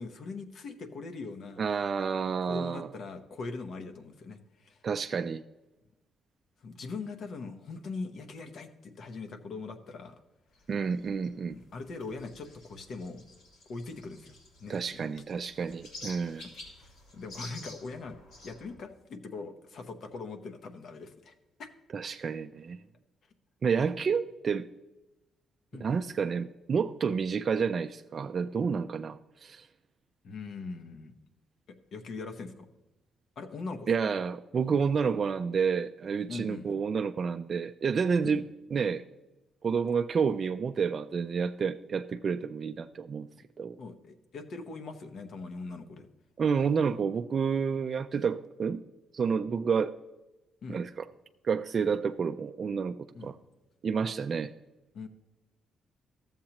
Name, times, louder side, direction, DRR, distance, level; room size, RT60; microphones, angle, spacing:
voice 1, 0.0-1.6 2.4-4.8 6.6-10.2 11.5-13.3 13.7-14.3 14.6-15.1 16.4-16.5 16.8-18.2 18.4-21.7 25.7-25.9 30.2-31.1 31.9-32.7 33.4-34.2 36.3-36.8 38.2-38.4 43.8-46.1 50.6-50.8 53.1-53.3 54.9-55.1, left 4 dB, 65° left, 6 dB, 0.9 m, -41 dB
voice 2, 1.6-2.9 4.8-5.4 10.7-11.6 14.7-16.4 21.9-22.8 23.6-24.7 25.8-29.7 33.9-38.4 38.7-39.0 39.6-43.3 43.6-43.8 46.4-48.8 49.1-49.9 50.7-51.1 51.4-53.0 53.2-53.4 53.8-54.5, right 6 dB, 50° right, 8 dB, 0.3 m, -29 dB
sound 1, 10.5-18.7, left 2 dB, 90° left, 2.3 m, -50 dB
13.0 x 7.3 x 2.9 m, 1.0 s
cardioid pair, 75°, 0 cm